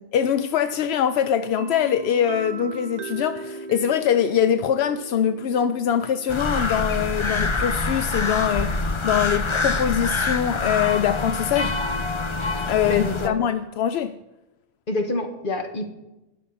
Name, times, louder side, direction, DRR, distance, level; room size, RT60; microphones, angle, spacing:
voice 1, 0.1-11.7 12.7-14.1, left 9 dB, 85° left, 11 dB, 0.8 m, -23 dB
sound 1, 1.6-9.2, right 4 dB, 50° right, 0.6 m, -39 dB
sound 2, 6.3-13.3, left 3 dB, 30° left, 0.8 m, -25 dB
voice 2, 12.9-13.4 14.9-15.8, left 2 dB, 55° left, 5 dB, 1.7 m, -27 dB
20.5 x 7.1 x 4.1 m, 0.97 s
omnidirectional pair, 1.0 m